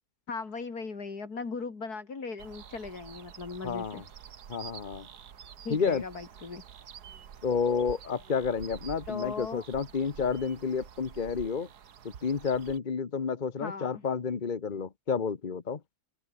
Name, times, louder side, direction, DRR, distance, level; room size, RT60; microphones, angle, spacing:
voice 1, 0.3-4.0 5.6-6.7 9.1-9.6 13.6-14.0, left 4 dB, 75° left, 3.4 m, -38 dB
sound 1, 2.4-12.8, right 8 dB, 85° right, 1.9 m, -48 dB
voice 2, 3.6-4.0 4.5-5.1 5.7-6.0 7.4-11.7 12.2-15.8, left 5 dB, 35° left, 1.1 m, -30 dB
omnidirectional pair, 1.7 m